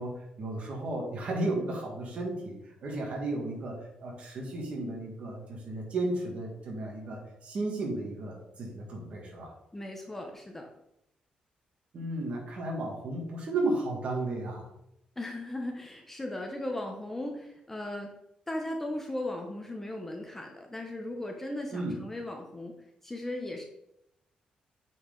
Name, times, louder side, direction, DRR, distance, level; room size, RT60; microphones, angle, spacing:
voice 1, 0.0-9.5 11.9-14.7 21.7-22.0, right 2 dB, 50° right, -1 dB, 1.9 m, -34 dB
voice 2, 9.7-10.7 15.2-18.1 18.5-22.7 23.0-23.6, left 1 dB, 10° left, 1 dB, 0.8 m, -37 dB
8.6 x 4.7 x 3.9 m, 0.81 s
cardioid pair, 145°, 3 cm